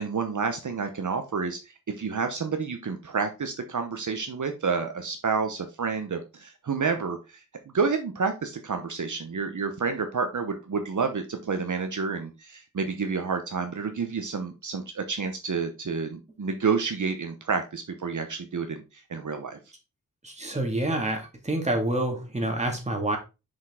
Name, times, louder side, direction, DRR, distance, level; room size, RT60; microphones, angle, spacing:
voice 1, 0.0-19.6, right 5 dB, 60° right, 6 dB, 0.9 m, -29 dB
voice 2, 20.2-23.2, right 1 dB, 20° right, 2 dB, 2.0 m, -27 dB
6.1 x 5.2 x 3.6 m, 0.28 s
wide cardioid pair, 105°, 34 cm